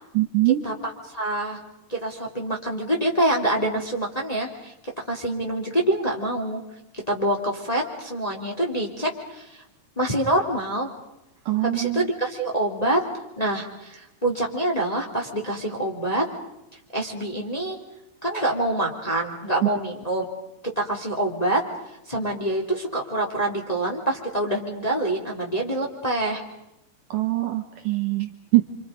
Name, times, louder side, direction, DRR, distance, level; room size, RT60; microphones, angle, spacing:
voice 1, 0.1-0.6 11.5-12.1 19.6-19.7 27.1-28.7, right 18 dB, 65° right, 5 dB, 2.5 m, -23 dB
voice 2, 1.1-1.6 1.9-4.7 5.1-6.6 6.9-9.6 10.0-10.9 11.6-13.0 13.4-16.2 16.9-17.8 18.2-20.2 20.8-21.6 22.1-26.4, right 1 dB, 10° left, 0 dB, 2.7 m, -26 dB
29.0 x 26.0 x 5.1 m, 0.89 s
omnidirectional pair, 4.5 m